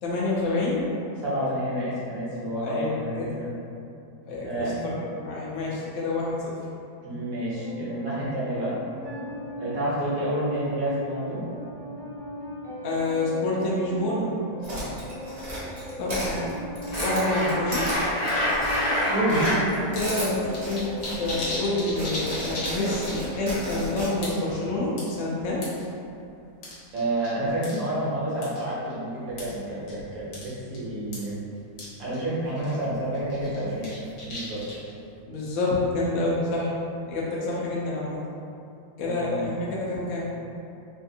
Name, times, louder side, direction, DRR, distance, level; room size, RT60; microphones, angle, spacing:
voice 1, 0.0-0.8 2.6-3.3 4.3-6.5 12.8-14.3 16.0-16.5 17.0-17.8 20.0-25.6 35.3-36.7 37.0-38.2 39.0-40.3, left 2 dB, 65° left, -6 dB, 0.8 m, -28 dB
voice 2, 1.2-3.5 4.4-5.1 7.0-8.8 9.6-11.4 14.7-14.8 19.1-19.6 26.9-31.3 32.0-33.9 34.2-34.6 39.0-39.5, right 1 dB, 65° right, -8 dB, 1.4 m, -29 dB
sound 1, 7.5-24.5, left 1 dB, 35° left, 0.9 m, -39 dB
sound 2, 14.6-19.0 19.3-21.6 21.9-24.1, equal, 30° right, 0.8 m, -35 dB
sound 3, 16.9-19.6 20.0-20.1 20.3-23.3 23.6-23.8 24.2-24.5 25.0-25.8 26.6-27.3 27.6-27.8 28.4-28.6 29.4-29.5 29.9-30.0 30.3-30.5 30.7-30.8 31.1-31.2 31.8-31.9 32.1-32.2 32.6-32.8 33.3-34.9, left 1 dB, 80° left, 1.4 m, -29 dB
3.3 x 2.5 x 2.6 m, 2.7 s
omnidirectional pair, 1.6 m